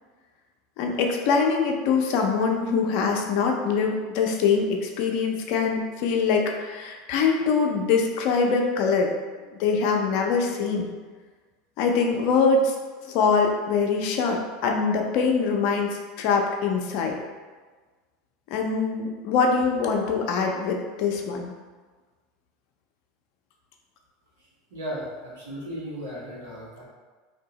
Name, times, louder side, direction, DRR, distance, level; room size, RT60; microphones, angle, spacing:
voice 1, 0.8-9.1 9.6-10.9 11.8-12.7 13.0-17.1 18.5-21.5, left 5 dB, 60° left, 1 dB, 0.5 m, -23 dB
voice 2, 24.7-26.8, equal, 85° right, -7 dB, 1.4 m, -35 dB
2.8 x 2.6 x 4.0 m, 1.4 s
hypercardioid pair, 100°, 0 cm